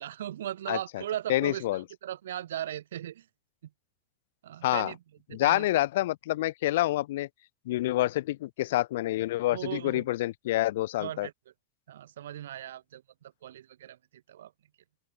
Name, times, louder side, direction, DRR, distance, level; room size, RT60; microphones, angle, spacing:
voice 1, 0.0-3.3 3.6-3.7 4.4-5.0 5.3-5.7 9.5-10.1 11.0-11.3 11.9-14.5, right 11 dB, 85° right, 0.5 m, -38 dB
voice 2, 0.7-1.0 1.3-1.8 4.6-4.9 5.3-7.3 7.7-11.3, left 15 dB, 75° left, 0.5 m, -27 dB
open air
hypercardioid pair, 115°, 0 cm